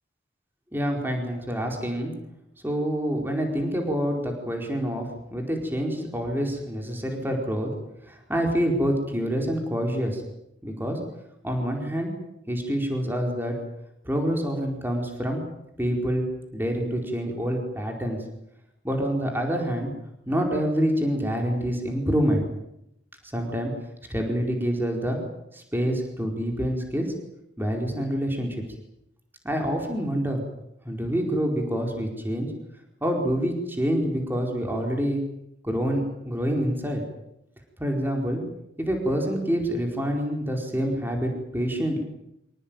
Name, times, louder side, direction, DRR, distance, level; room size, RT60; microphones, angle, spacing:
voice 1, 0.7-2.1 2.6-5.0 5.3-7.7 8.1-10.2 10.6-11.0 11.4-12.1 12.5-13.5 14.0-15.4 15.8-16.3 16.5-18.2 18.8-19.9 20.3-22.4 23.3-23.7 24.1-25.2 25.5-27.1 27.6-28.6 29.4-30.4 30.8-32.5 33.0-35.2 35.6-37.0 37.8-38.4 38.8-42.0, equal, 10° right, 1 dB, 4.6 m, -26 dB
26.0 x 18.0 x 9.2 m, 0.82 s
head